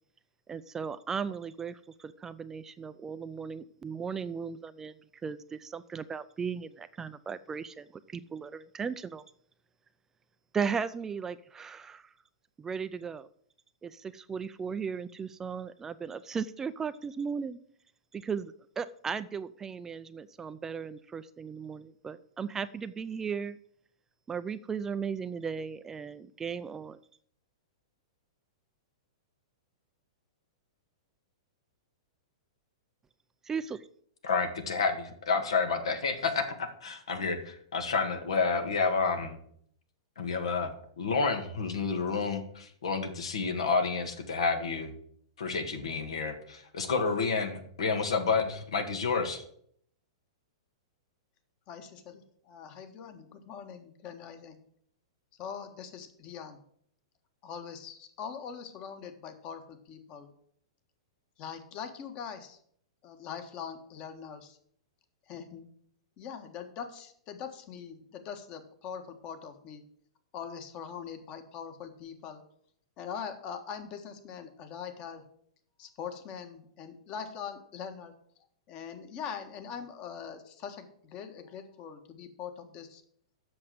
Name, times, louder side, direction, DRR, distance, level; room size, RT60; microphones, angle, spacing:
voice 1, 0.5-7.9 8.1-9.2 10.5-12.1 12.6-13.3 13.8-17.6 18.1-23.6 24.3-27.0 33.4-33.9, right 6 dB, 15° right, 13 dB, 0.4 m, -36 dB
voice 2, 34.2-39.4 40.2-40.7 41.0-44.9 45.4-49.4, left 4 dB, 80° left, 7 dB, 1.8 m, -30 dB
voice 3, 51.7-54.6 55.4-56.6 57.4-60.3 61.4-62.6 63.0-64.6 65.3-65.7 66.2-69.8 70.3-72.4 73.0-75.2 75.8-78.1 78.7-83.0, left 7 dB, 40° left, 8 dB, 1.5 m, -42 dB
7.8 x 6.3 x 7.7 m, 0.64 s
hypercardioid pair, 130°, 3 cm